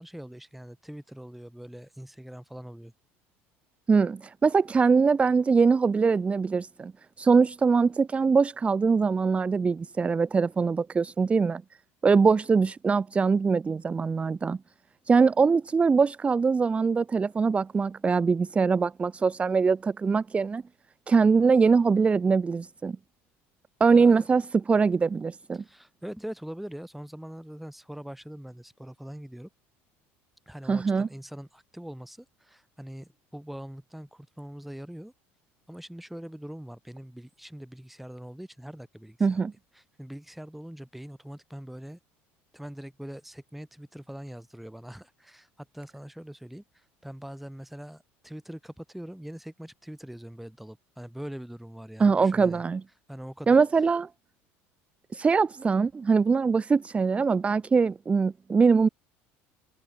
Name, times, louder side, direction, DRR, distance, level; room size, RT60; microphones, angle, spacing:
voice 1, 0.0-2.9 23.9-24.3 25.6-29.5 30.5-35.1 35.7-39.4 39.7-42.0 42.5-46.6 47.0-52.6 53.1-53.6, equal, ahead, 4.6 m, -42 dB
voice 2, 3.9-6.9 7.2-11.6 12.0-14.6 15.1-20.6 21.1-23.0 23.8-25.6 30.7-31.1 39.2-39.5 52.0-52.8 53.5-54.1 55.1-58.9, right 5 dB, 20° right, 0.8 m, -22 dB
supercardioid pair, 110°, 6 cm